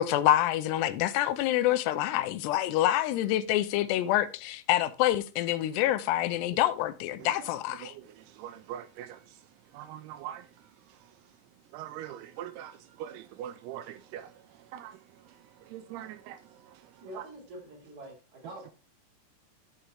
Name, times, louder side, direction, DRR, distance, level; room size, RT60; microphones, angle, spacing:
voice 1, 0.0-7.9, left 13 dB, 85° left, 2.7 m, -27 dB
voice 2, 8.4-9.2 9.7-10.4 11.7-14.3 14.7-15.0 15.7-16.4, right 11 dB, 80° right, 2.5 m, -41 dB
voice 3, 17.0-18.7, right 1 dB, 45° right, 4.3 m, -45 dB
11.0 x 6.9 x 3.3 m
omnidirectional pair, 4.8 m